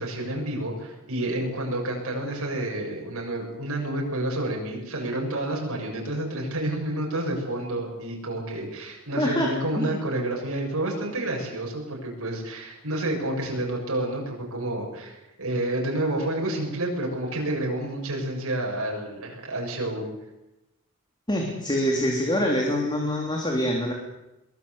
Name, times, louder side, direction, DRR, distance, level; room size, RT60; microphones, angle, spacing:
voice 1, 0.0-20.1, right 1 dB, 75° right, -1 dB, 7.1 m, -29 dB
voice 2, 9.2-9.9 21.3-23.9, equal, 20° left, 0 dB, 3.3 m, -25 dB
23.5 x 21.0 x 8.2 m, 0.96 s
head